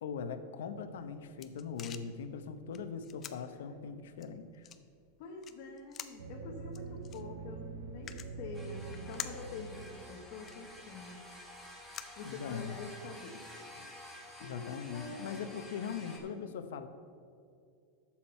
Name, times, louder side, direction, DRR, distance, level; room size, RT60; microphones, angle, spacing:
voice 1, 0.0-4.7 12.2-12.8 14.4-16.9, left 6 dB, 80° left, 9 dB, 0.8 m, -41 dB
sound 1, 0.8-12.9, left 9 dB, 20° left, 0.4 m, -51 dB
voice 2, 5.2-11.2 11.6-11.9 12.2-13.8 14.4-15.5 16.2-16.5, left 3 dB, 45° left, 0 dB, 1.0 m, -47 dB
sound 2, 6.2-11.0, right 4 dB, 70° right, 1.0 m, -45 dB
sound 3, 8.5-16.2, left 1 dB, 5° right, 1.4 m, -51 dB
11.5 x 7.4 x 4.3 m, 2.4 s
supercardioid pair, 170°, 0 cm